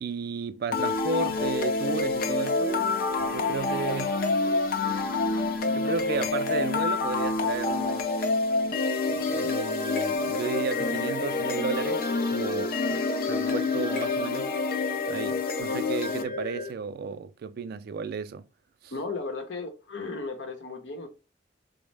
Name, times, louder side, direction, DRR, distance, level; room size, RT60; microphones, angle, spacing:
voice 1, 0.0-2.9 3.2-4.2 5.7-8.1 9.1-12.0 12.3-13.0 13.3-14.6 15.1-18.4 18.8-18.9, right 5 dB, 60° right, 0.3 m, -33 dB
sound 1, 0.7-16.7, left 3 dB, 55° left, 0.5 m, -27 dB
sound 2, 10.1-15.6, left 1 dB, 5° left, 0.7 m, -43 dB
voice 2, 18.9-21.1, left 3 dB, 75° left, 0.9 m, -35 dB
4.0 x 2.1 x 3.2 m
head